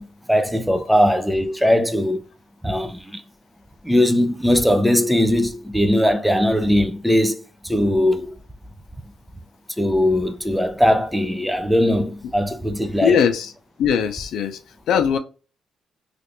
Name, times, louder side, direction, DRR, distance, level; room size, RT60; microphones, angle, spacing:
voice 1, 0.0-2.2 2.6-3.2 3.8-8.3 9.8-13.2, left 1 dB, ahead, 0.5 m, -20 dB
voice 2, 13.0-13.5 13.8-14.6 14.9-15.2, left 7 dB, 75° left, 0.6 m, -19 dB
3.2 x 2.5 x 2.9 m
cardioid pair, 90°, 0 cm